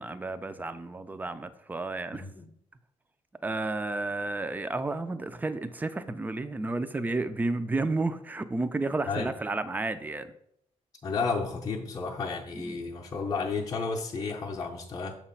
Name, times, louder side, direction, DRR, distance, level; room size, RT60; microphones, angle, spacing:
voice 1, 0.0-2.3 3.4-10.3 12.6-12.8, right 2 dB, 15° right, 11 dB, 0.3 m, -32 dB
voice 2, 2.1-2.5 9.1-9.3 11.0-15.2, left 4 dB, 30° left, -1 dB, 0.6 m, -32 dB
6.5 x 3.0 x 5.6 m, 0.73 s
cardioid pair, 155°, 13 cm